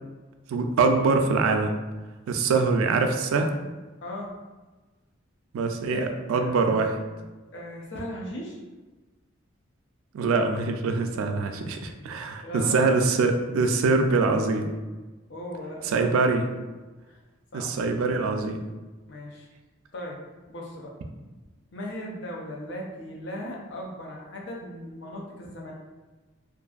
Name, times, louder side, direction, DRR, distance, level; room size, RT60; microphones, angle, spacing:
voice 1, 0.5-1.7 2.3-3.5 5.5-6.9 10.1-14.7 15.8-16.5 17.5-18.6, right 4 dB, 90° right, 6 dB, 0.3 m, -24 dB
voice 2, 4.0-4.3 5.9-6.0 6.3-7.2 7.5-8.6 12.4-12.8 15.3-16.4 17.1-17.2 17.5-17.7 19.1-19.5 19.9-20.2 20.5-20.9 21.7-25.7, equal, 60° left, -2 dB, 0.5 m, -38 dB
2.6 x 2.4 x 2.3 m, 1.2 s
head